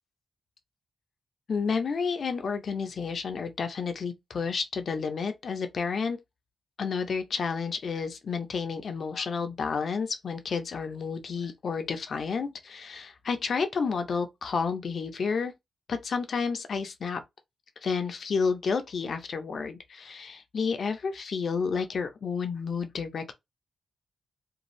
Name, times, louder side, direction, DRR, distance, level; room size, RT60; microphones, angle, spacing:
voice 1, 1.5-6.2 6.8-15.5 15.9-17.2 17.8-23.3, left 5 dB, 65° left, 0.6 m, -30 dB
2.6 x 2.3 x 3.0 m
cardioid pair, 60°, 0 cm